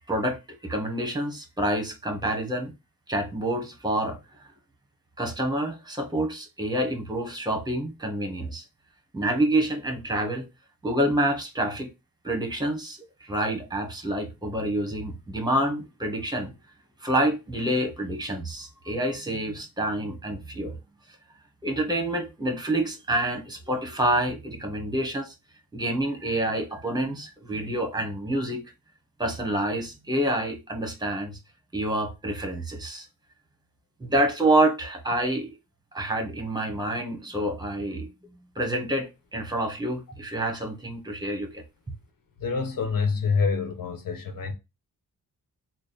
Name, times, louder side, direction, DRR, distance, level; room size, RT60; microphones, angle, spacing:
voice 1, 0.1-2.7 3.1-4.2 5.2-8.6 9.1-10.5 10.8-11.9 12.2-16.5 17.0-20.8 21.6-25.3 25.7-28.6 29.2-31.4 31.7-33.1 34.0-35.6 35.9-38.1 38.6-41.6, right 1 dB, 10° right, 1.0 m, -27 dB
voice 2, 42.4-44.5, left 5 dB, 80° left, 1.0 m, -26 dB
3.4 x 2.1 x 4.0 m
wide cardioid pair, 130°, 33 cm